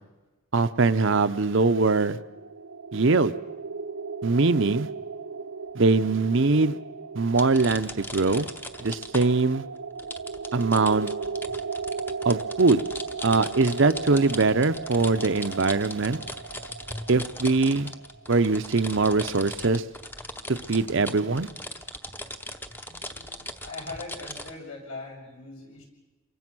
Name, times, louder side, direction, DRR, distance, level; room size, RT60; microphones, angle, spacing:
voice 1, 0.5-2.2 2.9-3.3 4.2-4.9 5.7-6.8 7.1-8.5 8.8-9.6 10.5-11.1 12.2-12.8 13.2-16.2 17.1-17.9 18.3-19.8 20.7-21.5, right 3 dB, 55° right, 11 dB, 0.7 m, -22 dB
sound 1, 1.5-18.4, right 5 dB, 85° right, 0.9 m, -37 dB
sound 2, 7.4-9.5 10.0-24.5, left 1 dB, 10° left, 0.8 m, -39 dB
voice 2, 22.9-25.8, left 2 dB, 70° left, -1 dB, 7.4 m, -41 dB
28.5 x 24.0 x 6.2 m, 1.2 s
head